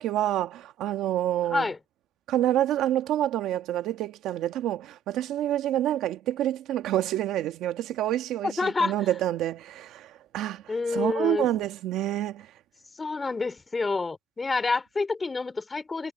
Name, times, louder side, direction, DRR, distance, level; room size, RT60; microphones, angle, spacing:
voice 1, 0.0-1.7 2.3-10.6 10.9-12.5, right 12 dB, 90° right, 1.5 m, -28 dB
voice 2, 8.4-8.9 10.7-11.5 13.0-16.1, left 3 dB, 30° left, 2.9 m, -28 dB
cardioid pair, 90°, 0 cm